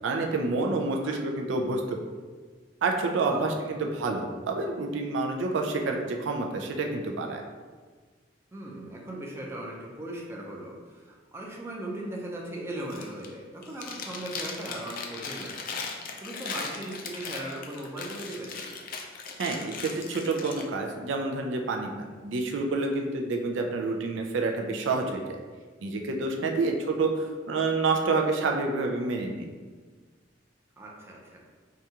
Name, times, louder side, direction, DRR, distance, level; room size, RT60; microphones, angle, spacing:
voice 1, 0.0-2.0 2.8-7.4 19.4-25.4 25.8-29.5, right 3 dB, 70° right, 2 dB, 0.4 m, -28 dB
voice 2, 3.3-3.9 8.5-18.7 26.4-26.7 30.8-31.5, right 1 dB, 15° right, -2 dB, 0.5 m, -39 dB
Chewing mastication, 12.8-13.3 13.6-20.6, left 5 dB, 50° left, 0.4 m, -38 dB
4.8 x 2.3 x 2.8 m, 1.5 s
head